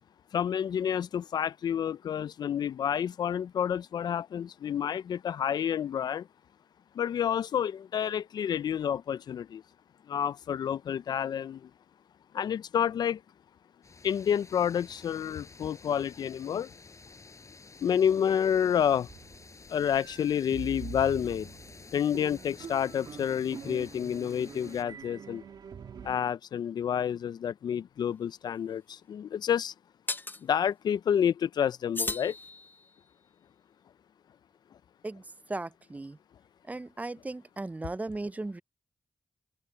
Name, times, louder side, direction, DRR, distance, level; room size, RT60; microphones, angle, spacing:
voice 1, 0.3-6.3 6.9-9.6 10.1-11.7 12.3-13.2 14.0-16.7 17.8-19.1 19.7-21.5 21.9-25.4 26.0-29.7 30.4-32.4, left 8 dB, 70° left, 0.5 m, -29 dB
sound 1, 13.8-24.8, left 4 dB, 45° left, 7.0 m, -51 dB
sound 2, 19.1-26.2, right 7 dB, 75° right, 2.5 m, -45 dB
sound 3, 28.1-28.2 30.1-30.4 31.9-33.0, left 3 dB, 30° left, 0.8 m, -35 dB
voice 2, 35.5-36.2 36.7-38.6, right 2 dB, 20° right, 0.5 m, -36 dB
supercardioid pair, 40°, 7 cm